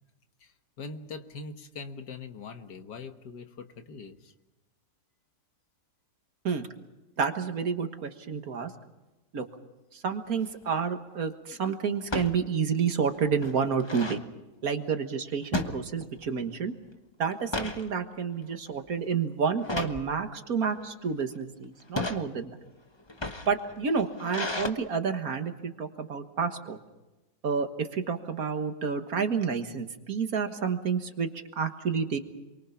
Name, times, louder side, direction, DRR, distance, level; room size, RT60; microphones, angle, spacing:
voice 1, 0.8-4.3, left 4 dB, 80° left, 7 dB, 1.9 m, -42 dB
voice 2, 7.2-8.7 9.3-9.4 9.9-14.2 14.6-16.7 17.2-22.5 23.5-26.8 27.4-31.3 31.6-32.2, right 6 dB, 60° right, 7 dB, 1.9 m, -29 dB
sound 1, 10.3-10.6 12.0-12.3 12.8-12.9 13.2-14.2 15.5-16.3 16.7-16.9 17.3-17.8 18.4-18.7 19.6-20.0 20.8-21.2 21.8-22.2 23.0-24.7, left 2 dB, 20° left, 1.1 m, -34 dB
28.0 x 23.5 x 5.8 m, 1.1 s
omnidirectional pair, 1.8 m